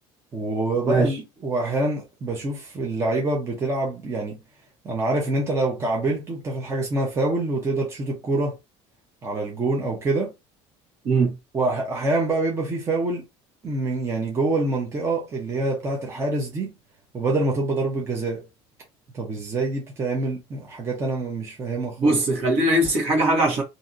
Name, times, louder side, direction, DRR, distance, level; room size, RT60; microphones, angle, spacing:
voice 1, 0.3-4.4 4.8-8.5 9.2-10.3 11.5-13.2 13.6-16.7 17.1-18.4 19.1-22.2, right 2 dB, 20° right, 0.8 m, -26 dB
voice 2, 11.0-11.4 22.0-23.6, right 2 dB, 55° right, 1.3 m, -20 dB
2.8 x 2.7 x 2.5 m
cardioid pair, 150°, 12 cm